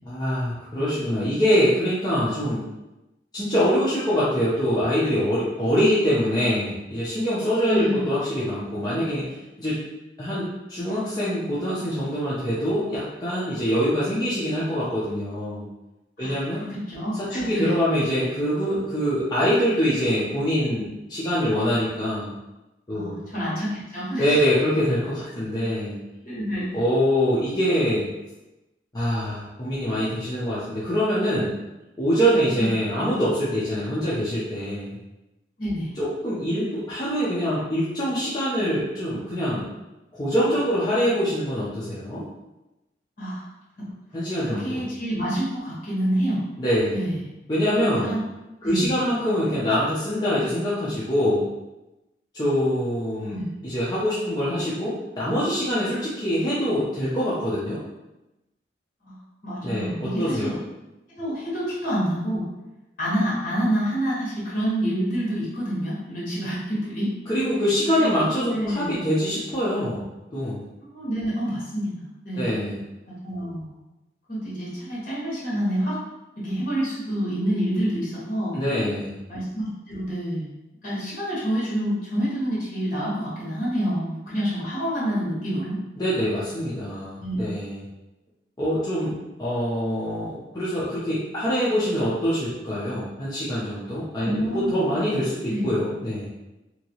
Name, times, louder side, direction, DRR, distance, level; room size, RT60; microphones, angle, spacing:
voice 1, 0.1-2.6 3.3-9.8 10.2-15.7 16.2-16.7 17.3-22.3 22.9-23.2 24.2-26.0 26.7-28.1 28.9-31.5 32.0-35.0 36.0-39.6 40.2-42.2 44.1-44.8 46.6-47.0 47.5-48.1 48.6-51.4 52.3-57.8 59.6-60.5 67.3-70.6 72.4-72.8 78.5-79.2 86.0-87.8 88.6-96.3, equal, 20° left, -10 dB, 0.6 m, -24 dB
voice 2, 7.7-8.1 16.2-17.7 22.9-24.3 26.2-26.8 32.6-32.7 35.6-35.9 43.2-43.5 43.8-43.9 44.4-46.4 46.9-47.2 48.0-48.2 48.6-48.9 53.3-53.5 59.0-59.2 59.4-60.5 61.1-62.5 63.0-67.1 67.9-69.0 70.8-72.5 73.0-73.7 74.3-76.0 76.4-78.6 79.3-80.5 80.8-85.8 87.2-87.4 94.2-94.7 95.5-95.7, equal, 50° left, -7 dB, 1.4 m, -27 dB
2.9 x 2.7 x 2.8 m, 0.99 s
head